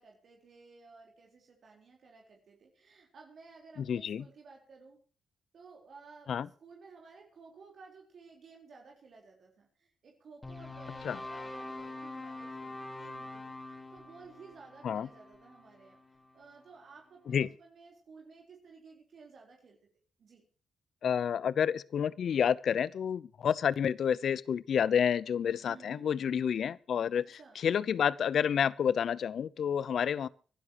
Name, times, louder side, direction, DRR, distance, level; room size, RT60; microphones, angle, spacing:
voice 1, 0.0-5.0 5.5-16.0 16.3-19.8 20.2-20.4 25.5-26.1 27.1-27.6, right 4 dB, 65° right, 4.0 m, -55 dB
voice 2, 3.9-4.2 6.3-6.5 11.0-11.2 14.8-15.1 17.3-17.5 21.0-27.3 27.6-30.3, left 8 dB, 70° left, 0.7 m, -29 dB
sound 1, 10.4-16.7, left 2 dB, 25° left, 4.2 m, -45 dB
24.0 x 12.5 x 3.0 m
supercardioid pair, 60°, 0 cm